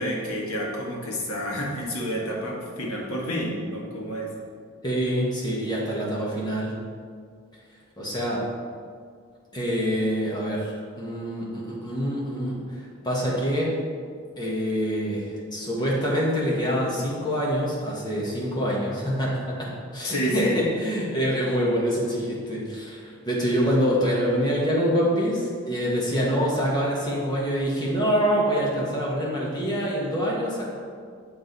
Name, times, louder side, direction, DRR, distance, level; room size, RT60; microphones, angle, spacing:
voice 1, 0.0-4.3 20.0-20.7, equal, 90° left, -2 dB, 1.4 m, -29 dB
voice 2, 4.8-6.7 8.0-8.4 9.5-12.6 13.0-13.7 14.4-30.7, equal, 20° left, -5 dB, 1.4 m, -25 dB
7.7 x 4.8 x 4.0 m, 2.1 s
head